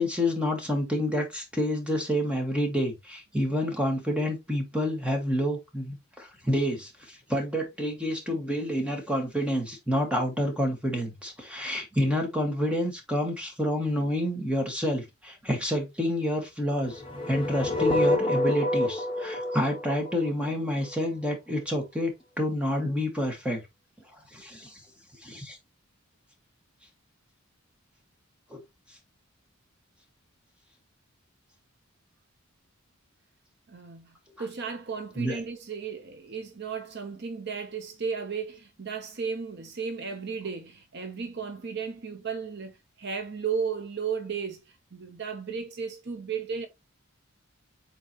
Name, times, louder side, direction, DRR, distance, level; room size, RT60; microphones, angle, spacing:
voice 1, 0.0-17.0 17.3-22.1 22.4-23.6 24.1-24.8 25.2-25.6 28.5-28.6 35.2-35.4, left 1 dB, 5° right, 1.8 m, -28 dB
sound 1, 16.9-21.0, left 1 dB, 25° left, 1.5 m, -28 dB
voice 2, 33.7-46.7, right 6 dB, 50° right, 0.8 m, -34 dB
8.0 x 3.9 x 3.0 m
head